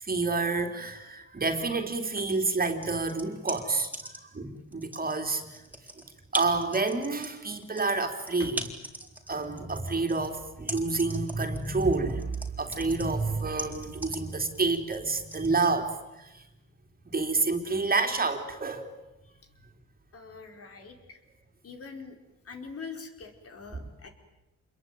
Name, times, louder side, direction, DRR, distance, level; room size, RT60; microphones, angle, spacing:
voice 1, 0.0-5.6 6.3-8.7 9.3-16.4 17.1-18.9 23.7-23.8, right 3 dB, 30° right, 5 dB, 3.4 m, -29 dB
sound 1, 2.5-4.4 4.7-15.5, right 1 dB, 5° right, 4.1 m, -39 dB
voice 2, 20.1-21.2 21.6-22.2 22.4-24.1, left 5 dB, 50° left, 5 dB, 4.8 m, -43 dB
27.5 x 22.0 x 9.4 m, 0.97 s
cardioid pair, 90°, 30 cm